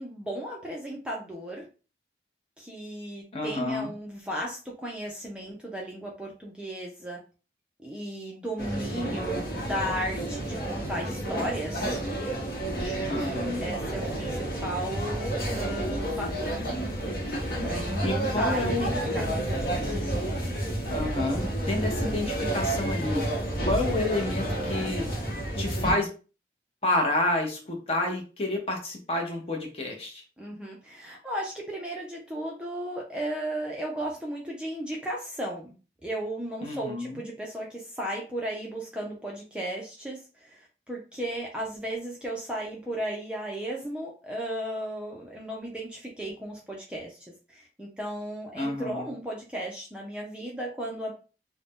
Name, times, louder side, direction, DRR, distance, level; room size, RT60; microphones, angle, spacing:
voice 1, 0.0-1.7 2.6-7.2 7.8-12.0 12.8-16.6 17.6-19.9 30.4-35.7 36.0-47.2 47.5-51.1, right 1 dB, 5° right, -2 dB, 0.4 m, -35 dB
voice 2, 3.3-3.9 13.1-13.6 18.0-18.9 20.9-23.2 23.6-25.1 25.6-26.1 26.8-30.2 36.6-37.2 48.5-49.1, left 2 dB, 35° left, 1 dB, 0.7 m, -29 dB
sound 1, 8.6-25.9, right 1 dB, 55° left, 1.0 m, -30 dB
sound 2, 15.8-25.9, left 1 dB, 85° left, 0.5 m, -43 dB
2.6 x 2.1 x 3.4 m, 0.35 s
head